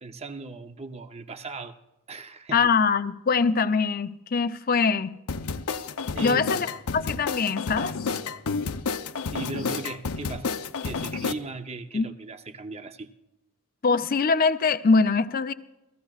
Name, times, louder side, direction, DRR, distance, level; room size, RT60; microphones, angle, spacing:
voice 1, 0.0-1.7 2.1-2.7 6.1-6.6 9.3-10.5 10.8-13.1, right 3 dB, 30° right, 0.7 m, -37 dB
voice 2, 2.5-5.2 6.2-6.7 6.9-7.9 11.9-12.1 13.8-15.5, left 4 dB, 40° left, 0.5 m, -23 dB
sound 1, 5.3-11.3, left 5 dB, 85° left, 0.7 m, -30 dB
29.0 x 14.5 x 2.4 m
head